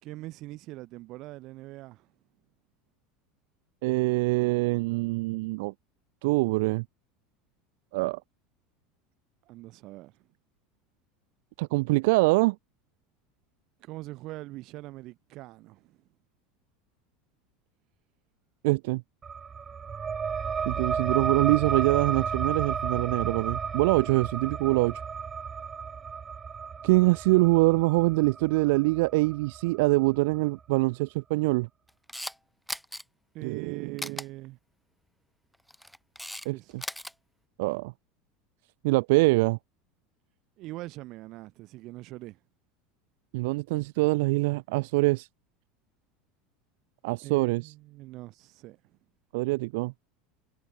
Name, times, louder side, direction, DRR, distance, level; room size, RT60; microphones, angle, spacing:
voice 1, 0.0-2.1 9.5-10.2 13.8-16.0 33.3-34.6 36.5-36.7 40.6-42.4 47.2-49.0, right 18 dB, 45° right, 5.3 m, -42 dB
voice 2, 3.8-5.7 6.2-6.8 7.9-8.2 11.6-12.6 18.6-19.0 20.7-25.0 26.8-31.7 33.4-34.1 36.4-36.8 37.6-37.9 38.8-39.6 43.3-45.3 47.0-47.7 49.3-49.9, right 23 dB, 70° right, 0.8 m, -24 dB
sound 1, 19.2-30.4, right 6 dB, 20° right, 0.4 m, -33 dB
Camera, 31.9-32.4 32.7-33.0 34.0-34.3 35.5-36.5 36.7-37.1, equal, ahead, 0.9 m, -37 dB
supercardioid pair, 160°, 0 cm